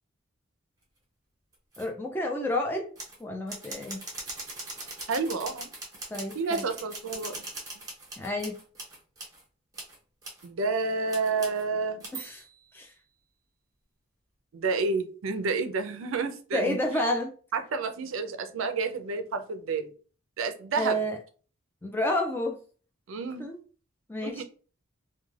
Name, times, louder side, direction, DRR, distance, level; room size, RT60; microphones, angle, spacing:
sound 1, 1.5-1.9 3.0-3.2 3.5-9.4 9.7-10.0 10.2-10.5 11.1-11.6 12.0-12.6, right 2 dB, 15° right, 0.8 m, -41 dB
voice 1, 1.8-2.9 3.2-4.0 6.1-6.6 8.2-8.6 12.1-12.4 12.7-12.9 16.5-17.3 20.8-21.2 21.8-22.6 23.4-23.6 24.1-24.4, left 1 dB, 10° left, 2 dB, 0.4 m, -30 dB
voice 2, 5.1-5.7 6.3-7.4 10.4-12.1 14.5-16.8 17.5-19.9 20.4-21.0 23.1-23.5 24.2-24.4, right 4 dB, 70° right, 8 dB, 0.4 m, -30 dB
2.3 x 2.2 x 3.1 m, 0.40 s
head